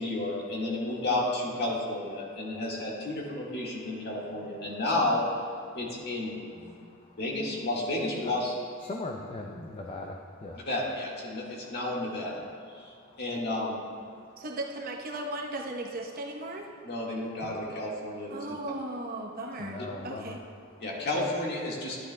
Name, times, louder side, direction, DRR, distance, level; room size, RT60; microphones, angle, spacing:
voice 1, 0.0-5.2 5.7-6.8 7.2-8.5 10.7-12.4 12.7-13.8 16.8-18.3 20.8-22.0, left 2 dB, 50° left, -4 dB, 1.7 m, -31 dB
voice 2, 2.2-2.6 4.7-4.8 5.7-5.8 6.5-7.2 8.2-8.4 8.8-10.7 11.3-11.8 12.6-13.2 14.1-14.4 16.9-17.1 17.4-17.7 18.1-18.4 19.6-20.9 22.0-22.1, left 2 dB, 25° left, 1 dB, 0.4 m, -43 dB
voice 3, 14.4-16.7 18.3-20.4, right 1 dB, 45° right, 0 dB, 0.8 m, -36 dB
11.5 x 10.0 x 2.2 m, 2.3 s
head